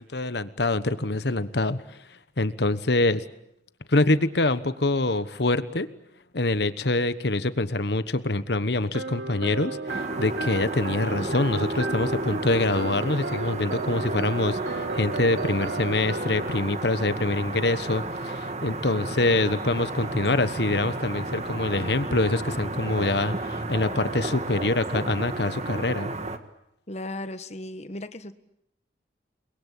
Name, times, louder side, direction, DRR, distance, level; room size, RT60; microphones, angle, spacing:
voice 1, 0.0-1.8 2.4-3.2 3.9-5.9 6.3-26.1, left 2 dB, 65° left, 13 dB, 1.3 m, -25 dB
sound 1, 8.9-16.6, right 3 dB, 80° right, 1.6 m, -34 dB
sound 2, 9.9-26.4, right 2 dB, 35° right, 1.8 m, -32 dB
voice 2, 26.9-28.3, left 1 dB, 35° left, 11 dB, 1.4 m, -36 dB
29.5 x 22.0 x 8.5 m, 0.80 s
head